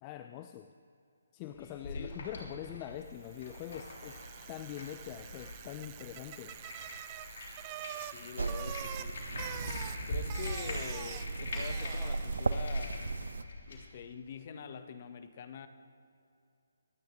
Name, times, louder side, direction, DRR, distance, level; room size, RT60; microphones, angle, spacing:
voice 1, 0.0-0.7 1.3-6.6, left 11 dB, 25° left, 8 dB, 0.4 m, -44 dB
sound 1, 1.5-13.9, left 1 dB, 55° left, 3.1 m, -44 dB
Bicycle, 3.2-12.6, right 12 dB, 25° right, 0.5 m, -46 dB
voice 2, 8.0-9.2 10.1-13.2 13.7-15.7, left 7 dB, 40° left, 10 dB, 0.9 m, -45 dB
sound 2, 8.4-13.4, right 3 dB, 75° right, 0.5 m, -36 dB
24.5 x 9.2 x 3.0 m, 2.6 s
figure-of-eight pair, 150°, 0 cm